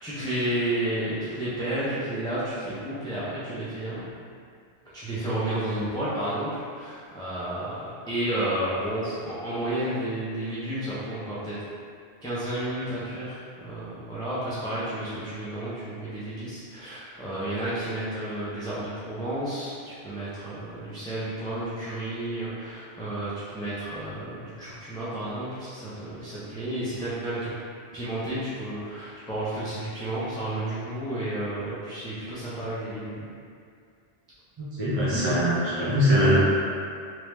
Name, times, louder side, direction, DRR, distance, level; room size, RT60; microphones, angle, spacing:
voice 1, 0.0-4.1 4.9-11.6 12.2-27.5 27.9-33.2, right 1 dB, 5° left, -11 dB, 0.6 m, -31 dB
voice 2, 34.6-36.4, equal, 25° right, -9 dB, 0.8 m, -22 dB
3.4 x 3.1 x 3.2 m, 2.3 s
omnidirectional pair, 1.1 m